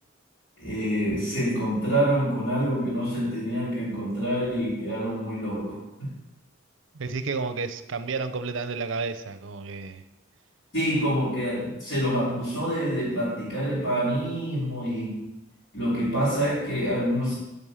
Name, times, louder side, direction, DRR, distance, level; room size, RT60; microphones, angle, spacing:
voice 1, 0.6-6.1 10.7-15.3 15.7-17.3, equal, 65° left, -11 dB, 3.9 m, -26 dB
voice 2, 6.9-10.0, right 4 dB, 70° right, 11 dB, 0.6 m, -31 dB
9.6 x 5.2 x 5.7 m, 0.94 s
head